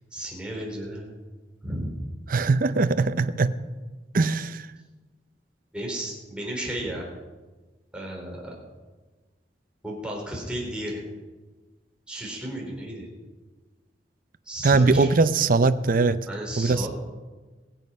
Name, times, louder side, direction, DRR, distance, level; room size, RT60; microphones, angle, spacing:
voice 1, 0.1-1.1 1.6-1.9 5.7-7.1 7.9-8.5 9.8-11.0 12.1-13.1 14.5-15.1 16.3-16.9, right 1 dB, 5° right, -2 dB, 3.8 m, -33 dB
voice 2, 2.3-3.5 4.1-4.7 14.6-16.2 16.6-16.9, right 3 dB, 50° right, 12 dB, 0.6 m, -21 dB
22.5 x 7.5 x 5.5 m, 1.3 s
head